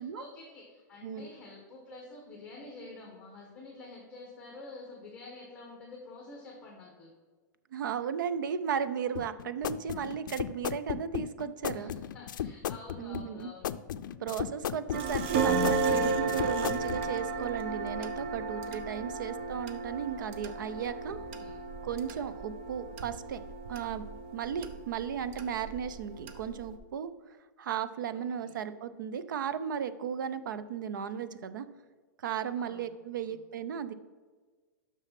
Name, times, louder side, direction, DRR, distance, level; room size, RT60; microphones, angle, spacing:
voice 1, 0.0-7.1 11.7-13.8 21.0-21.6 28.1-28.5 32.5-32.9 33.2-33.4, left 3 dB, 10° left, -2 dB, 1.4 m, -49 dB
voice 2, 7.7-11.9 13.0-13.5 14.2-21.2 21.8-23.4 23.7-24.0 24.3-27.1 27.6-31.7 32.2-33.9, right 8 dB, 85° right, 13 dB, 0.6 m, -35 dB
sound 1, 9.1-17.0, left 10 dB, 80° left, 0.4 m, -36 dB
sound 2, 14.9-26.8, right 4 dB, 40° right, 0.7 m, -34 dB
6.6 x 6.1 x 5.8 m, 1.4 s
supercardioid pair, 170°, 10 cm